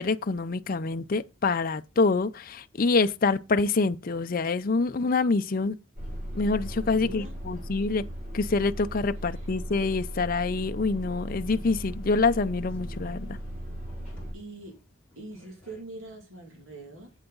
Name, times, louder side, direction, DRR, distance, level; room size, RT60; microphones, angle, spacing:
voice 1, 0.0-5.8 6.3-8.0 8.3-13.4, left 3 dB, 45° left, 0.5 m, -26 dB
sound 1, 6.0-14.3, equal, 35° right, 5.7 m, -37 dB
voice 2, 6.9-7.4 9.3-9.5 14.3-14.8 15.1-17.1, right 2 dB, 70° right, 2.5 m, -43 dB
sound 2, 10.8-15.8, equal, 10° left, 4.4 m, -57 dB
8.3 x 7.9 x 3.9 m
head